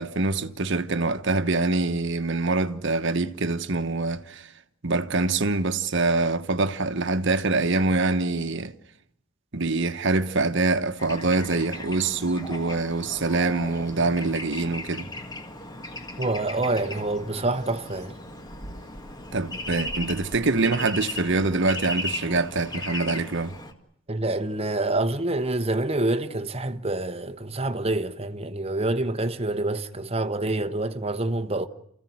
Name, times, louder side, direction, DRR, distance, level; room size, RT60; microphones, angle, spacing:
voice 1, 0.0-4.5 4.8-8.7 9.5-15.1 19.3-23.5, right 3 dB, 60° right, 1.2 m, -25 dB
Bird / Traffic noise roadway noise, 11.0-23.7, left 1 dB, 20° left, 1.8 m, -37 dB
voice 2, 16.2-18.2 24.1-31.7, right 2 dB, 30° right, 1.1 m, -27 dB
28.5 x 15.5 x 9.4 m
head